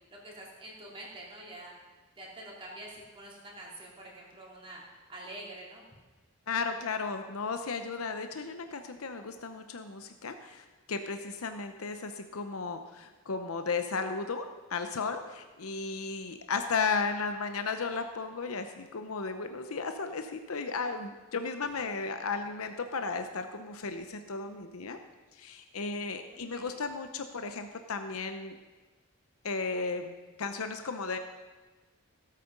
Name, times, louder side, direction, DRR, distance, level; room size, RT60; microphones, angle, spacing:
voice 1, 0.2-1.7 2.2-5.8 21.8-21.9 26.3-26.8, right 1 dB, 25° right, -4 dB, 3.0 m, -46 dB
voice 2, 6.5-25.0 25.3-28.6 29.4-31.2, left 4 dB, 90° left, 7 dB, 0.8 m, -35 dB
17.0 x 8.4 x 5.3 m, 1.3 s
head